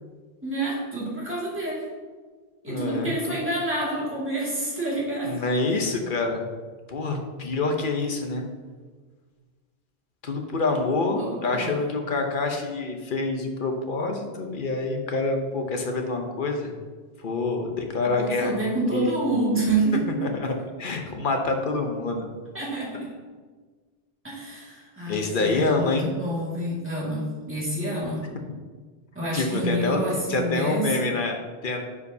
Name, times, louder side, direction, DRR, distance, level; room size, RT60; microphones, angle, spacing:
voice 1, 0.4-1.9 2.6-5.4 11.0-11.8 18.2-20.2 22.5-23.1 24.2-28.2 29.1-31.0, right 2 dB, 10° right, -6 dB, 2.0 m, -28 dB
voice 2, 2.7-3.1 5.2-6.5 6.9-8.5 10.2-16.7 17.2-18.5 18.9-19.1 20.2-22.3 25.1-26.1 29.3-31.8, left 3 dB, 50° left, 3 dB, 0.9 m, -26 dB
9.4 x 5.0 x 2.7 m, 1.5 s
omnidirectional pair, 1.2 m